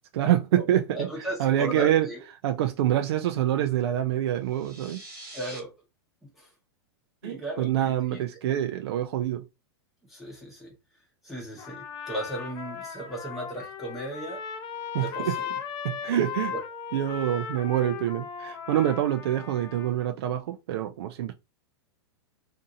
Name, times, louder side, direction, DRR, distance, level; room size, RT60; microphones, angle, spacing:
voice 1, 0.1-2.1 2.4-5.0 7.2-9.4 14.9-15.4 15.8-16.5 16.9-21.3, right 12 dB, 70° right, 0.4 m, -26 dB
voice 2, 0.9-2.2 5.3-5.7 6.4-6.5 7.2-8.2 10.1-10.7 11.2-14.4 14.9-15.5 16.5-16.6, right 1 dB, ahead, 0.9 m, -36 dB
sound 1, 4.5-5.6, right 1 dB, 20° right, 1.3 m, -44 dB
Trumpet, 11.6-20.1, left 7 dB, 30° left, 0.6 m, -37 dB
2.6 x 2.5 x 2.7 m
hypercardioid pair, 125°, 14 cm